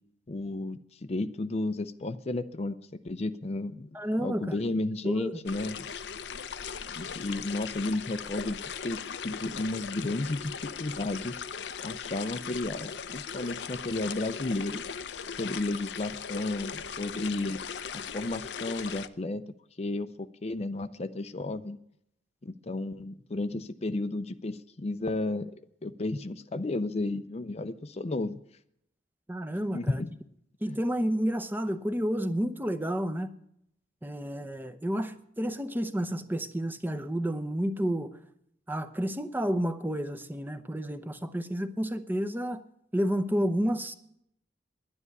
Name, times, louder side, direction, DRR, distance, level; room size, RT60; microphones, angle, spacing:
voice 1, 0.3-2.8 3.0-4.0 4.2-5.9 7.0-11.3 11.8-14.8 15.4-17.6 17.9-19.4 19.8-20.1 20.4-21.8 22.4-25.5 25.8-28.4 29.7-30.1 30.7-30.8, left 2 dB, 35° left, 11 dB, 0.5 m, -33 dB
voice 2, 3.9-4.5 5.0-5.4 29.3-30.0 30.6-33.3 34.0-38.2 38.7-42.6 42.9-43.9, equal, 10° right, 9 dB, 0.8 m, -30 dB
sound 1, 5.5-19.1, left 6 dB, 80° left, 0.6 m, -38 dB
11.0 x 9.8 x 8.1 m, 0.73 s
head